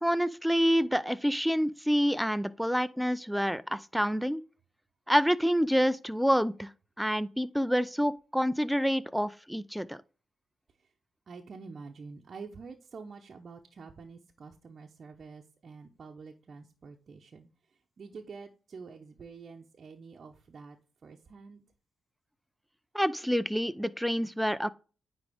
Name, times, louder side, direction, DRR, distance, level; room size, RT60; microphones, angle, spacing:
voice 1, 0.0-4.4 5.1-6.7 7.0-10.0 22.9-24.7, equal, ahead, 0.6 m, -27 dB
voice 2, 11.3-17.5 18.0-20.8 21.0-21.7, right 4 dB, 55° right, 0.9 m, -47 dB
9.6 x 3.7 x 3.5 m
supercardioid pair, 50°, 0 cm